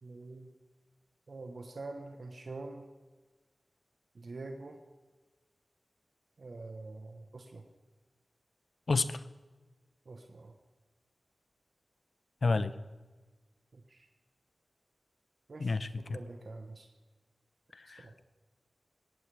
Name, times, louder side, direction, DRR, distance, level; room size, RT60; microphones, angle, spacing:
voice 1, 0.0-0.5 1.3-2.8 4.1-4.8 6.4-7.6 10.0-10.5 13.7-14.1 15.5-16.9 17.9-18.1, right 3 dB, 70° right, 4 dB, 1.2 m, -45 dB
voice 2, 8.9-9.2 12.4-12.7 15.6-16.2 17.7-18.2, left 3 dB, 65° left, 14 dB, 0.7 m, -31 dB
19.5 x 16.5 x 3.5 m, 1.3 s
cardioid pair, 45°, 0 cm